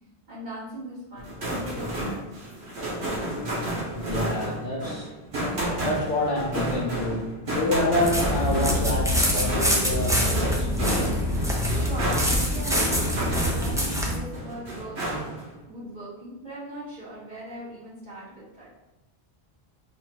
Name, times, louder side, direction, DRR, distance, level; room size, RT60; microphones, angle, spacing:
voice 1, 0.3-2.3 10.0-10.2 11.7-12.8 13.1-15.0 15.7-18.7, right 1 dB, 45° right, -10 dB, 1.8 m, -39 dB
sound 1, 1.2-13.9 14.3-15.5, right 1 dB, 85° right, 1.4 m, -31 dB
voice 2, 3.9-5.1 5.8-10.7, left 1 dB, 55° left, -2 dB, 0.8 m, -28 dB
sound 2, 8.0-14.2, equal, 5° right, 0.4 m, -25 dB
3.7 x 2.5 x 4.4 m, 0.97 s
omnidirectional pair, 1.1 m